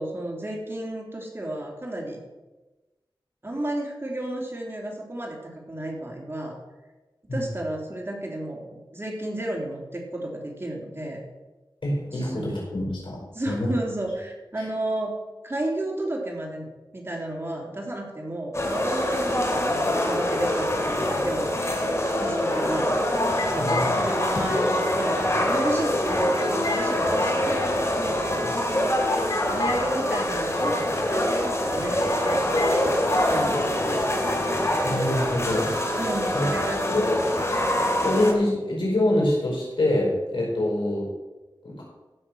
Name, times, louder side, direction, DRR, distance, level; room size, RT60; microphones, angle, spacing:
voice 1, 0.0-2.2 3.4-5.4 5.7-6.6 7.3-11.2 12.1-12.6 13.3-15.1 15.4-16.7 16.9-21.6 22.2-22.9 23.5-28.9 29.5-34.0 36.0-37.2, right 1 dB, 30° right, -1 dB, 3.2 m, -32 dB
voice 2, 11.8-13.2 13.4-13.7 14.6-14.7 23.6-24.0 34.8-35.7 36.3-36.5 36.9-37.2 38.0-41.1 41.6-41.8, left 1 dB, 85° left, -3 dB, 5.1 m, -25 dB
sound 1, 18.5-38.3, left 1 dB, 35° left, 2.6 m, -25 dB
sound 2, 21.7-22.4 23.1-25.4 25.7-25.8 26.1-26.9 27.2-28.1 28.7-28.8 29.0-31.3 31.6-31.7 32.0-32.8 33.1-33.3, left 1 dB, 55° left, 2.0 m, -32 dB
15.0 x 6.8 x 6.1 m, 1.1 s
wide cardioid pair, 50°, 8 cm